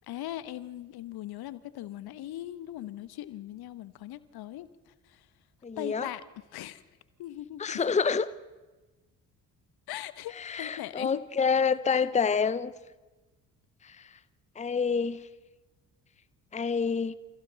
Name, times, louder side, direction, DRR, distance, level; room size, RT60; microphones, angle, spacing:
voice 1, 0.1-5.3 5.8-6.2 6.5-6.8 7.2-7.8 9.9-11.2, left 13 dB, 50° left, 15 dB, 1.2 m, -40 dB
voice 2, 5.6-6.1 7.6-8.3 10.4-12.7 13.8-14.0 14.6-15.2 16.5-17.1, left 5 dB, 15° left, 16 dB, 0.9 m, -27 dB
29.0 x 28.5 x 4.0 m, 1.2 s
figure-of-eight pair, 45°, 48 cm